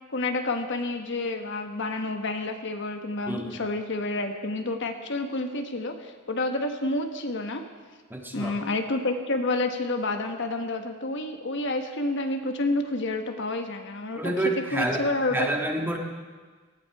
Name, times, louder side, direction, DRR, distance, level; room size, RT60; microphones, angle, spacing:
voice 1, 0.1-7.6 8.3-14.2 14.7-15.5, left 2 dB, 60° left, 5 dB, 1.3 m, -29 dB
voice 2, 3.3-3.6 8.1-8.5 14.2-15.0 15.3-16.0, right 1 dB, 10° right, 1 dB, 1.7 m, -28 dB
19.0 x 15.5 x 4.8 m, 1.4 s
head